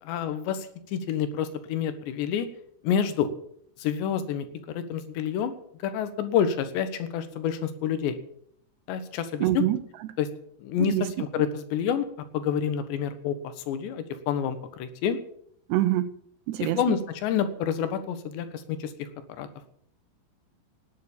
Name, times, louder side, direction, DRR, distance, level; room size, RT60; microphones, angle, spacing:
voice 1, 0.0-2.5 2.8-3.3 3.8-5.6 5.8-8.2 8.9-9.6 10.2-10.3 10.6-12.1 12.3-15.2 16.6-19.1 19.4-19.5, left 8 dB, 90° left, 10 dB, 3.6 m, -28 dB
voice 2, 9.4-9.8 10.8-11.0 15.7-16.1 16.5-17.0, right 14 dB, 80° right, 12 dB, 2.9 m, -25 dB
19.0 x 9.4 x 7.3 m, 0.68 s
omnidirectional pair, 4.9 m